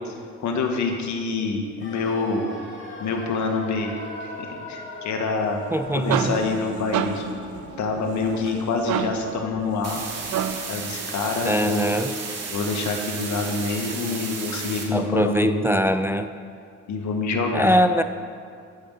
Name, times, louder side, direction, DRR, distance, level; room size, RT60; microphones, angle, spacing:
voice 1, 0.4-2.5 3.0-3.9 4.2-5.6 5.9-7.2 7.8-10.0 10.7-12.0 12.5-15.7 16.9-17.8, left 4 dB, 70° left, 3 dB, 1.5 m, -26 dB
sound 1, 1.8-11.7 12.0-12.1, left 2 dB, 40° left, 2.1 m, -41 dB
sound 2, 5.6-10.8, right 8 dB, 75° right, 0.6 m, -30 dB
voice 2, 5.7-6.3 11.4-12.1 14.9-16.3 17.5-18.0, equal, 10° right, 10 dB, 0.3 m, -22 dB
sound 3, 9.8-14.8, right 4 dB, 55° right, 2.2 m, -33 dB
13.0 x 5.2 x 6.5 m, 2.2 s
cardioid pair, 90°, 30 cm